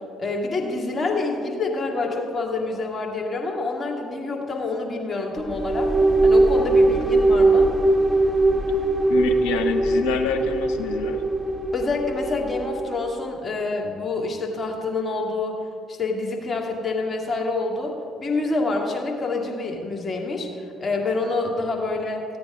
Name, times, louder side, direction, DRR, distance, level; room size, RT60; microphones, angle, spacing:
voice 1, 0.2-5.9 6.2-7.7 11.7-15.6 15.9-22.2, left 3 dB, 30° left, 0 dB, 2.5 m, -27 dB
sound 1, 5.4-12.9, right 2 dB, 15° right, 1.2 m, -20 dB
voice 2, 9.1-11.2, left 6 dB, 70° left, 4 dB, 1.1 m, -26 dB
15.0 x 8.6 x 5.1 m, 2.5 s
hypercardioid pair, 50°, 0 cm